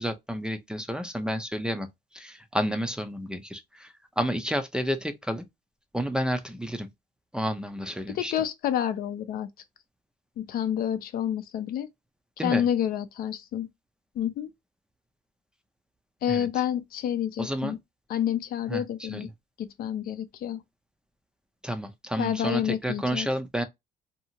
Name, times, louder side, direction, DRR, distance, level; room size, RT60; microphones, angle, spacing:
voice 1, 0.0-1.9 2.1-5.4 5.9-6.9 7.3-8.3 12.4-12.6 16.3-16.5 17.4-17.7 18.7-19.3 21.6-23.6, equal, 5° right, 0.5 m, -30 dB
voice 2, 8.1-9.5 10.4-11.9 12.4-13.7 14.2-14.5 16.2-17.8 18.1-19.3 19.6-20.6 22.2-23.3, left 10 dB, 60° left, 0.5 m, -29 dB
2.7 x 2.4 x 2.7 m
cardioid pair, 110°, 17 cm